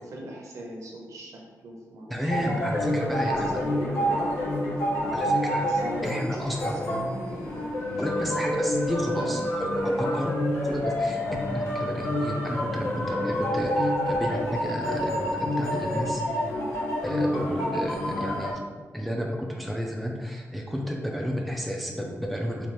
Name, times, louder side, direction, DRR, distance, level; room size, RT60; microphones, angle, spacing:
voice 1, 0.1-2.6 3.1-5.1 5.6-8.7 9.0-9.3 9.8-10.0, right 1 dB, 70° right, -1 dB, 0.7 m, -39 dB
voice 2, 2.1-3.6 5.1-5.6 6.0-6.7 8.0-10.3 10.6-16.2 17.0-18.6 18.9-22.7, equal, ahead, -1 dB, 0.3 m, -31 dB
sound 1, 2.3-18.5, equal, 75° left, 0.9 m, -28 dB
4.3 x 2.3 x 3.0 m, 1.4 s
wide cardioid pair, 175°, 6 cm